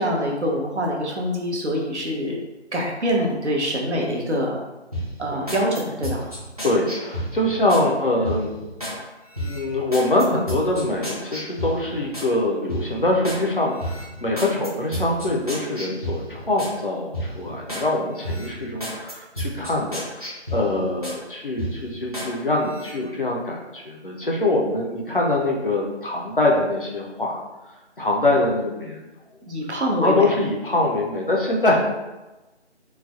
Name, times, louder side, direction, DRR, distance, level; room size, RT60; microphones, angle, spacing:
voice 1, 0.0-2.4 2.7-4.6 5.2-6.2 29.5-30.3, equal, 75° right, -1 dB, 0.8 m, -24 dB
sound 1, 4.9-7.9 8.2-9.0 9.3-12.3 12.7-13.4 13.8-16.8 17.1-17.9 18.2-21.2 21.6-22.3 22.7-22.9, equal, 35° right, 0.6 m, -32 dB
voice 2, 6.6-8.5 9.4-27.4 28.0-29.0 30.0-31.8, left 2 dB, 50° left, -2 dB, 0.5 m, -23 dB
3.2 x 2.0 x 2.4 m, 1.1 s
figure-of-eight pair, 165°, 35 cm